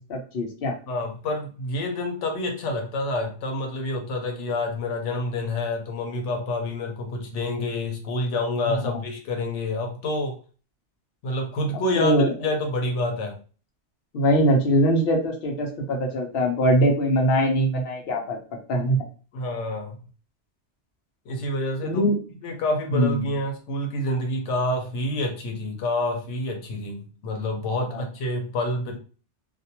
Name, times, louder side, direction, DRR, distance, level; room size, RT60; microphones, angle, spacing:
voice 1, 0.1-0.7 12.0-12.3 14.1-18.4 18.7-19.0 21.8-22.2 22.9-23.3 27.9-28.0, equal, 60° left, 2 dB, 0.8 m, -22 dB
voice 2, 0.9-10.4 11.2-13.4 19.3-20.0 21.3-22.0 22.4-29.0, left 1 dB, 85° left, 3 dB, 1.0 m, -28 dB
2.5 x 2.1 x 2.8 m, 0.37 s
omnidirectional pair, 1.2 m